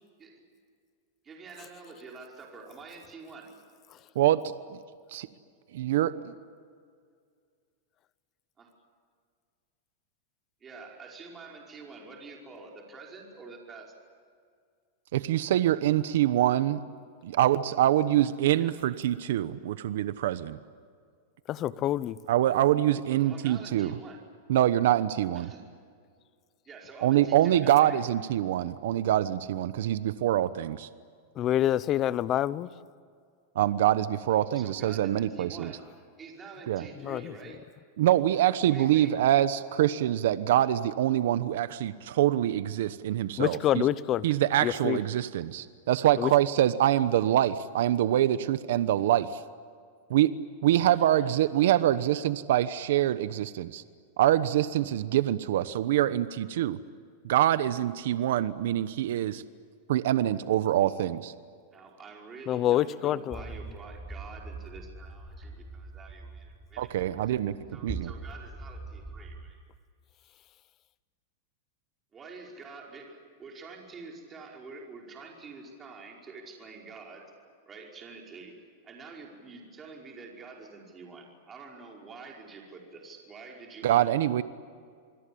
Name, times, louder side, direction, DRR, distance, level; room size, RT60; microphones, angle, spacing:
voice 1, 1.3-3.5 8.6-8.7 10.6-13.9 18.6-18.8 23.2-24.3 25.3-25.6 26.7-28.0 34.3-35.9 36.2-37.6 38.7-39.2 51.0-51.3 61.7-67.4 67.7-69.6 72.1-77.3 77.7-84.1, right 4 dB, 20° right, 0 dB, 5.2 m, -47 dB
voice 2, 5.7-6.3 15.1-16.8 17.2-20.6 22.3-23.9 24.5-25.5 27.0-30.9 33.5-35.7 36.7-36.8 38.0-43.9 44.2-49.4 50.1-50.3 50.6-53.8 54.2-56.8 57.2-59.4 59.9-61.3 66.8-67.5 67.8-68.1 83.8-84.4, right 12 dB, 70° right, 14 dB, 1.0 m, -25 dB
voice 3, 21.5-22.2 31.4-32.7 37.1-37.3 43.4-44.2 44.6-45.0 46.2-46.3 62.5-63.4, left 12 dB, 30° left, 18 dB, 0.8 m, -26 dB
sound 1, 63.3-69.5, right 3 dB, ahead, 4.4 m, -43 dB
28.0 x 21.5 x 8.6 m, 2.1 s
supercardioid pair, 150°, 0 cm